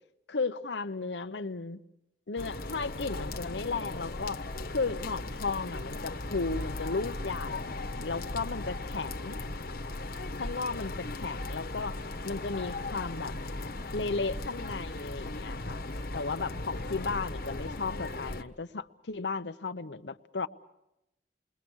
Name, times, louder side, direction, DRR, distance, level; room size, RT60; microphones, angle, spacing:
voice 1, 0.3-1.8 2.3-4.4 4.7-9.4 10.4-13.4 13.9-15.8 16.1-20.5, left 4 dB, 85° left, 0.9 m, -35 dB
sound 1, 2.4-18.4, left 2 dB, 55° left, 1.3 m, -37 dB
28.5 x 21.5 x 6.4 m
head